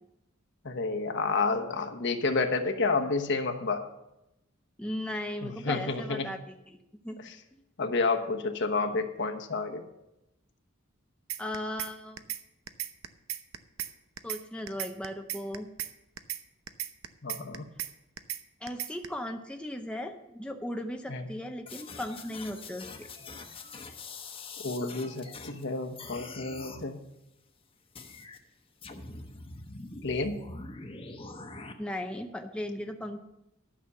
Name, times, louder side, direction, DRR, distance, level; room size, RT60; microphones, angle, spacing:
voice 1, 0.6-3.8 5.4-6.3 7.2-7.3 7.8-9.8 17.2-17.7 21.1-21.3 24.6-27.0 30.0-30.4, left 3 dB, 60° left, 4 dB, 1.1 m, -30 dB
voice 2, 4.8-6.8 7.0-7.3 11.4-12.2 14.2-15.7 18.6-23.1 31.8-33.2, left 1 dB, 5° left, 4 dB, 0.6 m, -37 dB
sound 1, 11.3-11.9 12.2-12.4 12.7-13.9 14.2-14.4 14.7-15.9 16.2-16.4 16.7-17.9 18.2-18.4 18.7-19.1, right 11 dB, 85° right, 0.7 m, -35 dB
sound 2, 21.7-25.6 25.9-26.8 27.9-28.4 28.8-31.7, left 3 dB, 25° left, 1.0 m, -44 dB
12.5 x 6.2 x 6.9 m, 0.89 s
head